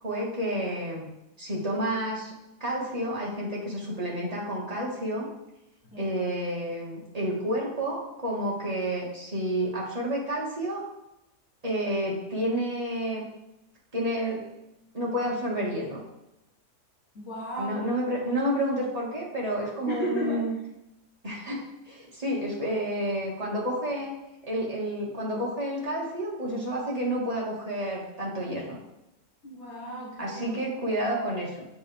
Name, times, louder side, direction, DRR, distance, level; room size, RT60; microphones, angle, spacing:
voice 1, 0.0-1.1 1.4-2.3 2.6-5.3 6.0-10.8 11.6-13.2 13.9-14.4 14.9-16.0 17.6-20.5 21.2-24.1 24.4-28.8 30.2-31.6, equal, 25° right, -4 dB, 1.8 m, -30 dB
voice 2, 17.1-17.9 19.8-20.4 29.4-30.6, right 2 dB, 45° left, -8 dB, 2.4 m, -34 dB
8.3 x 4.7 x 3.5 m, 0.88 s
omnidirectional pair, 1.7 m